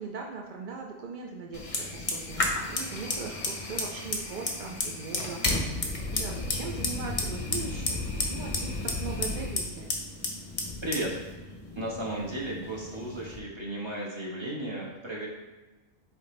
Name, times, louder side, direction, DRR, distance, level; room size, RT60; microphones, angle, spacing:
voice 1, 0.0-9.9, right 4 dB, 70° right, 0 dB, 0.4 m, -40 dB
Fire, 1.5-13.4, left 2 dB, 35° left, 0.7 m, -33 dB
voice 2, 10.8-11.2 11.7-15.3, right 1 dB, 20° right, -4 dB, 1.3 m, -34 dB
8.3 x 3.5 x 3.3 m, 1.1 s
omnidirectional pair, 1.5 m